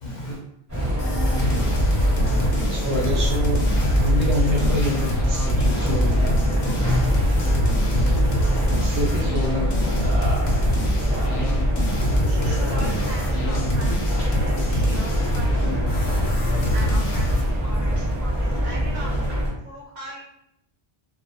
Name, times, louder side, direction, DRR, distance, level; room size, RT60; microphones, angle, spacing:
voice 1, 0.0-0.4 0.7-0.9 1.2-1.7 2.1-2.5 2.8-3.3 3.6-4.2 4.8-5.0 5.6-5.8 6.0-6.3 6.6-7.0 7.3-8.7, equal, 55° left, 0.6 m, -33 dB
sound 1, 0.7-19.5, equal, 20° right, 0.8 m, -23 dB
sound 2, 1.0-17.5, left 1 dB, 85° left, 0.9 m, -26 dB
Car, 1.9-10.8, right 1 dB, 15° left, 0.6 m, -45 dB
voice 2, 2.7-6.6 8.0-8.2 8.8-10.2, left 1 dB, 80° right, 0.9 m, -28 dB
voice 3, 12.3-20.2, right 1 dB, 50° right, 0.7 m, -40 dB
2.2 x 2.1 x 2.7 m
omnidirectional pair, 1.0 m